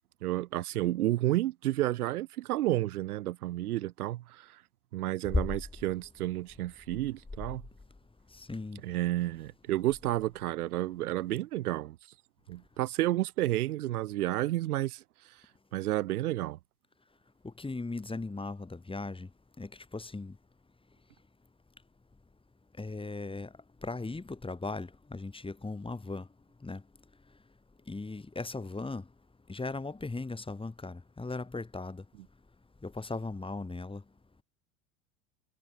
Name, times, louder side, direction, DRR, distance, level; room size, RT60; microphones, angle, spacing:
voice 1, 0.2-4.6 4.9-7.6 8.8-12.0 12.5-15.0 15.7-16.6, right 15 dB, 85° right, 0.7 m, -31 dB
voice 2, 8.5-8.8 17.6-19.3 19.6-20.3 22.8-23.5 23.8-26.2 26.6-26.8 27.9-29.0 29.5-32.0 32.8-34.0, left 3 dB, 10° left, 4.5 m, -38 dB
hypercardioid pair, 90°, 43 cm